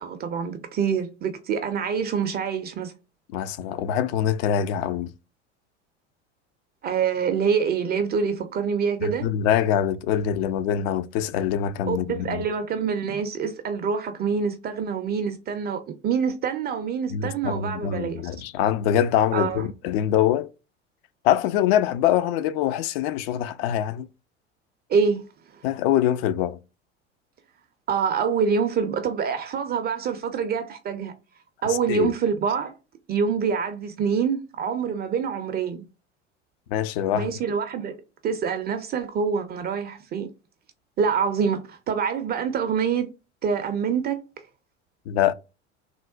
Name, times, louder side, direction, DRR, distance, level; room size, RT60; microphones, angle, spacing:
voice 1, 0.0-2.9 6.8-9.3 11.9-18.3 19.3-19.7 24.9-25.3 25.5-25.6 27.9-31.1 31.6-32.8 33.1-35.9 37.1-38.0 38.2-40.3 41.0-43.1 43.4-44.4, right 6 dB, 30° right, 0.4 m, -26 dB
voice 2, 3.3-5.1 9.0-12.4 17.1-20.5 21.2-24.1 25.6-26.6 31.9-32.1 36.7-37.3 45.1-45.3, left 10 dB, 55° left, 0.4 m, -24 dB
3.6 x 2.0 x 2.3 m
hypercardioid pair, 80°, 36 cm